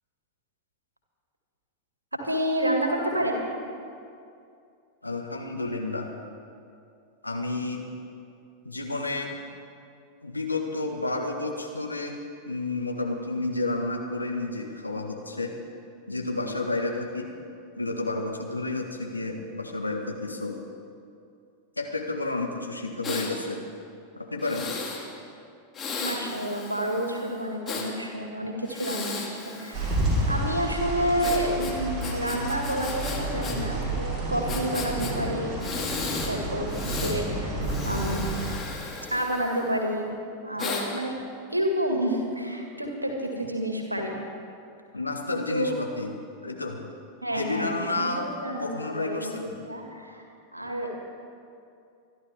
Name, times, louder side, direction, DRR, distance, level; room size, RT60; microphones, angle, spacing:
voice 1, 2.1-3.4 26.0-30.0 30.3-35.6 36.3-38.2 39.1-40.1 40.4-41.1 41.5-44.1 45.3-45.8 47.2-50.2 50.5-50.9, right 1 dB, 85° right, 2 dB, 2.1 m, -29 dB
voice 2, 5.0-6.1 7.2-7.8 8.6-9.3 10.2-12.2 12.5-15.5 16.1-17.3 17.8-20.6 21.8-23.6 24.2-24.7 44.9-46.1 46.4-46.8 47.3-48.3 48.6-49.5, left 2 dB, 85° left, 2 dB, 1.6 m, -31 dB
Breathing, 23.0-23.3 24.4-25.0 25.7-27.9 28.6-30.3 31.2-33.6 33.8-33.9 34.5-35.1 35.6-36.3 36.7-37.2 37.6-39.8 40.6-40.8, left 4 dB, 20° left, 2.3 m, -35 dB
sound 1, 29.7-38.5, right 1 dB, 25° right, 4.4 m, -30 dB
25.5 x 11.5 x 3.6 m, 2.4 s
figure-of-eight pair, 90°, 0 cm